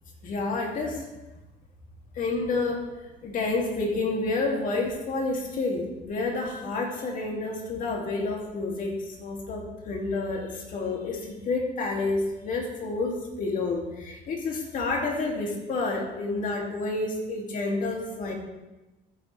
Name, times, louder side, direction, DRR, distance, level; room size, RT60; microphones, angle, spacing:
voice 1, 0.2-1.0 2.1-2.9 3.2-18.3, left 3 dB, 55° left, 0 dB, 2.7 m, -29 dB
13.0 x 9.7 x 3.4 m, 1.0 s
cardioid pair, 110°, 17 cm